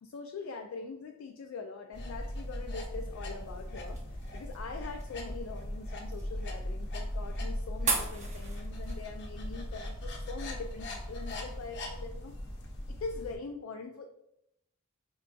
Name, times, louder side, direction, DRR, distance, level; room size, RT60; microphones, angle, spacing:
voice 1, 0.0-12.3 12.9-14.1, left 4 dB, 75° left, 4 dB, 0.3 m, -43 dB
sound 1, 1.9-13.4, left 1 dB, 55° left, 0.7 m, -39 dB
sound 2, 2.9-11.4, right 3 dB, 35° right, 0.6 m, -41 dB
5.2 x 2.6 x 2.2 m, 0.80 s
head